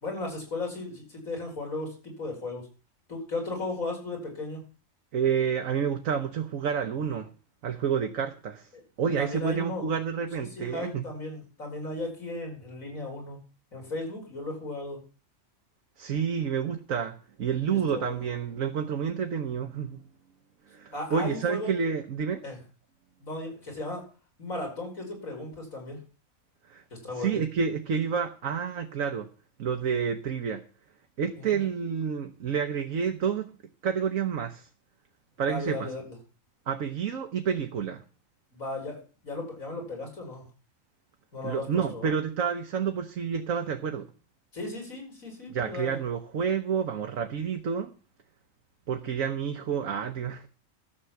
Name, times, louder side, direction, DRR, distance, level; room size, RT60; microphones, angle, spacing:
voice 1, 0.0-2.7 3.1-4.6 8.7-8.8 9.2-9.9 10.6-13.4 13.7-15.0 17.7-18.2 20.9-21.7 22.4-22.6 23.2-24.0 24.4-26.0 26.9-27.4 31.4-31.7 35.5-36.1 38.5-40.5 41.3-42.1 44.5-46.0, left 2 dB, 90° left, 5.5 m, -36 dB
voice 2, 5.1-7.3 7.6-8.7 9.0-11.0 16.0-20.0 20.7-22.4 26.7-26.8 27.2-29.3 29.6-30.6 31.2-33.5 33.8-34.7 35.4-35.9 36.7-38.0 41.4-44.1 45.5-47.9 48.9-50.5, right 7 dB, 80° right, 1.4 m, -29 dB
13.0 x 7.8 x 7.2 m
omnidirectional pair, 1.4 m